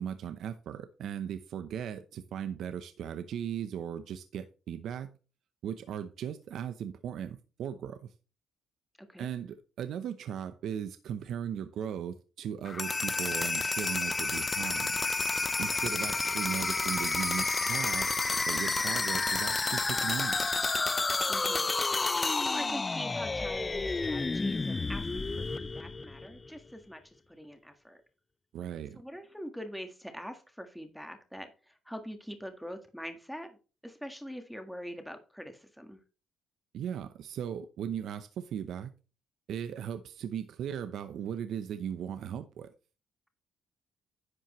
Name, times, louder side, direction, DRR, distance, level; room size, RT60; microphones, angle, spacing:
voice 1, 0.0-5.1 5.6-8.1 9.2-15.0 15.6-18.1 18.5-20.4 28.5-29.0 36.7-38.9 39.5-42.7, right 9 dB, 75° right, 0.8 m, -37 dB
sound 1, 12.6-26.5, left 3 dB, 25° left, 0.4 m, -30 dB
voice 2, 21.3-21.7 22.4-28.0 29.0-33.6 33.8-36.0, equal, ahead, 1.6 m, -43 dB
11.0 x 7.4 x 3.1 m
cardioid pair, 90°, 0 cm